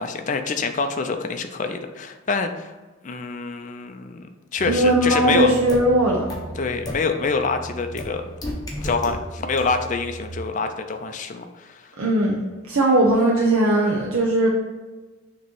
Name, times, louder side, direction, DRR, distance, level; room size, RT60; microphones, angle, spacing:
voice 1, 0.0-2.7 3.0-5.5 6.6-8.2 8.8-11.9, left 4 dB, 35° left, 6 dB, 0.4 m, -26 dB
sound 1, 4.6-10.3, right 2 dB, 65° right, 1.6 m, -39 dB
voice 2, 4.6-6.2 12.0-12.4 12.7-14.5, right 1 dB, 85° right, -2 dB, 0.8 m, -18 dB
sound 2, 5.7-5.8 6.3-6.4 6.9-7.0 8.0-8.1 8.4-9.1 9.6-9.7, left 1 dB, 20° left, 0.9 m, -30 dB
6.8 x 3.0 x 4.5 m, 1.2 s
head